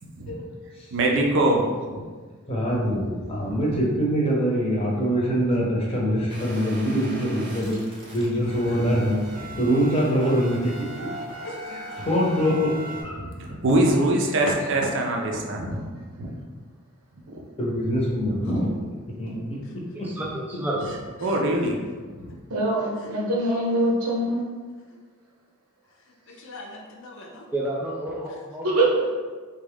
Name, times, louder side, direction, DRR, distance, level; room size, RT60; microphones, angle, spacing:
voice 1, 0.9-1.7 1.9-2.0 3.4-3.7 13.2-15.8 16.2-16.3 17.1-17.5 18.3-18.6 19.2-19.4 21.2-21.8 22.2-22.3, right 1 dB, 60° right, 0 dB, 0.5 m, -24 dB
voice 2, 2.4-7.8 8.1-10.7 12.0-13.5 17.6-18.8 19.2-19.3 22.2-22.4, equal, 25° left, -4 dB, 0.8 m, -24 dB
sound 1, 6.3-13.0, right 1 dB, 25° right, 0.7 m, -39 dB
voice 3, 11.4-11.9 18.4-18.7 19.6-19.8 21.2-21.8 23.0-23.1 24.9-25.0 26.0-27.5 28.3-28.4, left 1 dB, 60° left, 1 dB, 0.6 m, -43 dB
voice 4, 20.0-20.8 27.5-29.2, right 1 dB, 10° right, -4 dB, 0.3 m, -30 dB
voice 5, 22.5-24.4 28.6-28.9, right 1 dB, 90° right, -3 dB, 0.9 m, -23 dB
3.5 x 2.3 x 3.5 m, 1.5 s
head